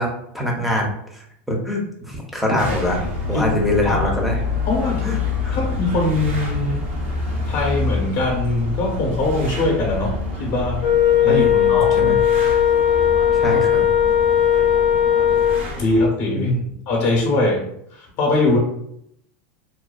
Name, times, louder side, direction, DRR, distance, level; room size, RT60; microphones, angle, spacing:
voice 1, 0.0-4.4 5.0-5.6 11.2-12.2 13.3-13.9 16.3-16.6, left 1 dB, ahead, 0 dB, 0.6 m, -24 dB
sound 1, 2.6-16.1, left 4 dB, 85° right, 0.7 m, -27 dB
voice 2, 4.7-5.0 5.5-6.8 7.5-10.8 11.2-12.1 13.4-13.6 15.8-16.5 16.9-17.7 17.9-18.6, left 2 dB, 55° left, -1 dB, 0.7 m, -22 dB
Wind instrument woodwind instrument, 10.8-15.7, left 9 dB, 85° left, 0.5 m, -17 dB
2.5 x 2.2 x 2.3 m, 0.72 s
supercardioid pair, 120°, 7 cm